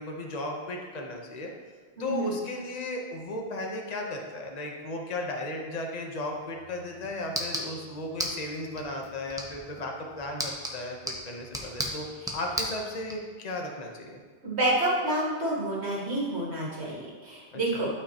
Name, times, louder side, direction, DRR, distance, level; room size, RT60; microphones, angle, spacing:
voice 1, 0.0-1.5 2.0-12.1 12.3-14.2 17.5-17.9, left 1 dB, 40° left, 1 dB, 1.0 m, -35 dB
voice 2, 2.0-2.3 14.4-17.9, right 1 dB, 85° right, -5 dB, 2.1 m, -28 dB
sound 1, 6.5-13.2, equal, 5° right, 0.8 m, -37 dB
12.0 x 5.0 x 2.9 m, 1.5 s
omnidirectional pair, 1.1 m